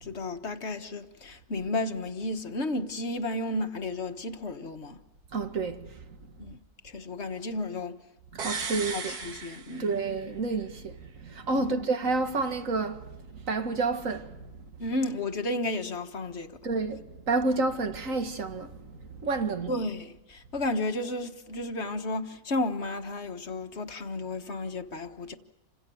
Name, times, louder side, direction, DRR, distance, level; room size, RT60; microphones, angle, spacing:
voice 1, 0.0-5.0 6.4-6.6 6.8-8.0 8.9-9.9 11.5-11.8 14.8-16.6 19.7-25.3, left 2 dB, 45° left, 1.7 m, -33 dB
voice 2, 5.3-5.9 8.3-9.2 9.8-11.0 11.2-13.0 13.5-14.4 16.6-18.7 19.2-19.7, right 3 dB, 55° right, 2.2 m, -29 dB
sound 1, 8.4-10.3 10.6-10.7, right 5 dB, 85° right, 2.1 m, -36 dB
28.5 x 26.5 x 7.0 m
omnidirectional pair, 1.6 m